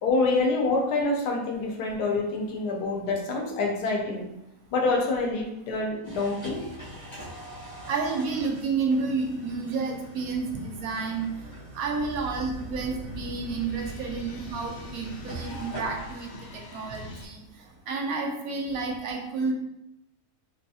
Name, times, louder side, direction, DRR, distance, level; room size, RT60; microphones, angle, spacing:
voice 1, 0.0-4.3 4.7-6.7, left 3 dB, 85° left, 1 dB, 1.2 m, -26 dB
sound 1, 6.0-17.8, equal, 20° left, 0.9 m, -44 dB
voice 2, 7.9-11.3 11.7-17.4 17.9-19.5, right 4 dB, 70° right, 1 dB, 1.0 m, -30 dB
sound 2, 12.0-17.2, equal, 70° left, 0.9 m, -42 dB
3.8 x 2.3 x 2.7 m, 0.89 s
omnidirectional pair, 1.7 m